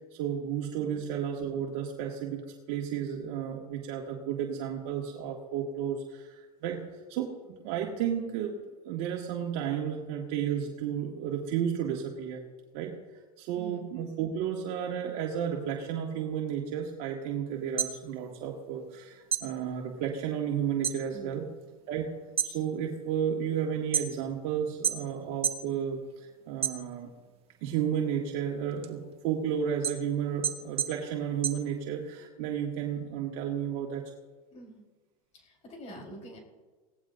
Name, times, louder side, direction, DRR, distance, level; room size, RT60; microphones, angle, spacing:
voice 1, 0.1-8.6 8.9-12.5 12.7-13.0 13.4-21.5 21.9-22.1 22.4-27.1 27.6-34.0, right 8 dB, 60° right, 0 dB, 2.0 m, -32 dB
voice 2, 13.5-13.9 21.1-21.4 34.5-34.8 35.3-36.4, right 1 dB, 35° left, 0 dB, 4.3 m, -45 dB
sound 1, 17.6-19.0 19.3-21.0 21.4-21.8 22.2-24.4 24.8-25.7 26.1-27.3 27.7-32.2, right 8 dB, 30° right, 1.7 m, -32 dB
23.5 x 17.5 x 2.7 m, 1.3 s
supercardioid pair, 115°, 20 cm